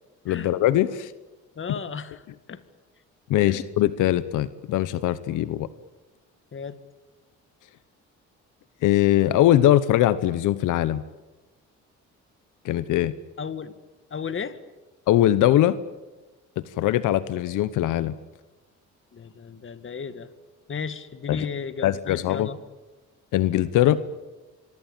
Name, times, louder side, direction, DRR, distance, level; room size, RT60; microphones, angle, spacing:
voice 1, 0.2-1.1 3.3-5.7 8.8-11.0 12.6-13.1 15.1-15.8 16.8-18.1 21.3-21.5 21.8-22.5 23.3-24.0, left 13 dB, 85° left, 15 dB, 1.0 m, -21 dB
voice 2, 1.6-2.6 3.4-3.6 6.5-6.8 13.4-13.7 14.1-14.6 19.1-20.3 20.7-22.6, left 6 dB, 40° left, 12 dB, 2.1 m, -34 dB
26.5 x 24.0 x 9.0 m, 1.2 s
cardioid pair, 90°, 30 cm